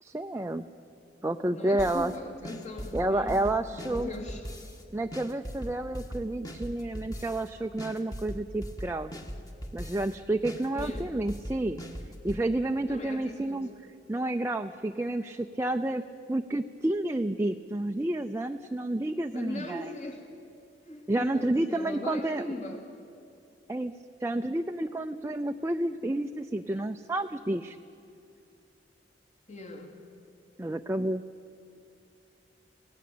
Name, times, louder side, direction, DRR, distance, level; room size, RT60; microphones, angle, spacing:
voice 1, 0.0-0.6 1.2-2.1 2.9-4.1 4.9-9.1 9.7-11.8 12.2-13.7 14.1-16.0 16.3-19.8 21.1-22.4 23.7-23.9 24.2-27.8 30.6-31.2, right 1 dB, 15° right, 5 dB, 0.5 m, -30 dB
voice 2, 1.5-4.4 10.7-11.2 12.9-13.7 19.3-20.2 20.8-22.9 29.5-30.0, left 2 dB, 40° left, 2 dB, 2.6 m, -40 dB
sound 1, 1.8-2.2 2.4-4.8 5.1-7.5 7.8-10.1 10.4-12.4, equal, 20° left, 1.8 m, -39 dB
27.5 x 17.5 x 8.6 m, 2.6 s
head